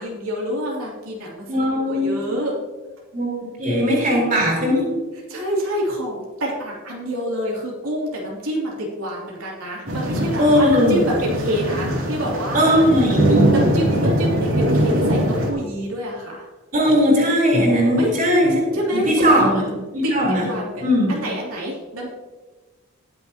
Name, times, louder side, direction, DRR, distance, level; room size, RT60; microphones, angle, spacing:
voice 1, 0.0-2.5 5.3-12.8 13.5-16.5 18.0-18.1 18.7-19.5 20.0-20.1 20.4-22.1, equal, 90° right, -4 dB, 3.0 m, -27 dB
voice 2, 1.4-2.4 3.1-3.3 3.6-4.9 10.4-11.1 12.5-13.4 16.7-18.6 18.9-19.6 19.9-20.5 20.8-21.1, equal, 40° right, -3 dB, 4.2 m, -18 dB
sound 1, 9.9-15.5, right 1 dB, 70° right, 2.8 m, -21 dB
20.0 x 7.7 x 2.9 m, 1.3 s
head